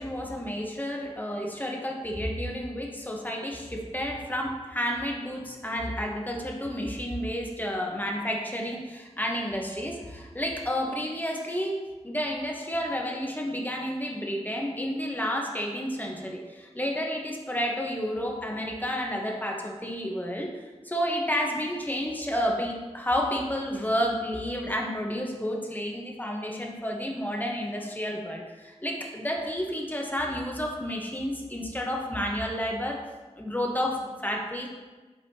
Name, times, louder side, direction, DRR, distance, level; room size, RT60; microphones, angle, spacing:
voice 1, 0.0-11.7 12.0-20.5 20.8-33.0 33.4-34.7, equal, 15° left, -1 dB, 1.0 m, -31 dB
8.1 x 4.1 x 2.8 m, 1.3 s
wide cardioid pair, 55°, 12 cm